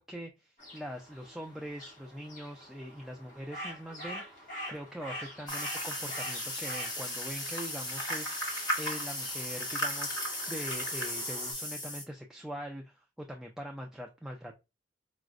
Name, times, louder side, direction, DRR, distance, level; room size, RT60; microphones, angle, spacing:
voice 1, 0.0-14.5, equal, 5° right, 1 dB, 0.3 m, -43 dB
sound 1, 0.6-11.5, equal, 45° left, 1.7 m, -46 dB
sound 2, 5.5-12.0, equal, 25° left, 1.1 m, -35 dB
4.8 x 2.0 x 2.4 m, 0.26 s
head